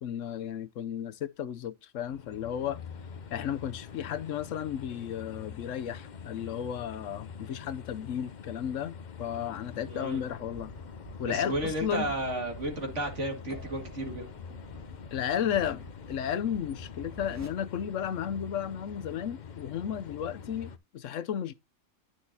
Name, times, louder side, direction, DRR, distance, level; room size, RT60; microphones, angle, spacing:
voice 1, 0.0-2.8 3.3-10.7 11.2-12.1 15.1-21.5, left 9 dB, 70° left, 1.0 m, -34 dB
sound 1, 2.1-20.8, left 6 dB, 45° left, 0.6 m, -45 dB
voice 2, 9.9-10.2 11.2-14.3, right 1 dB, 60° right, 2.4 m, -33 dB
sound 2, 10.3-17.5, right 3 dB, 10° right, 1.9 m, -49 dB
10.0 x 6.2 x 2.8 m
omnidirectional pair, 1.4 m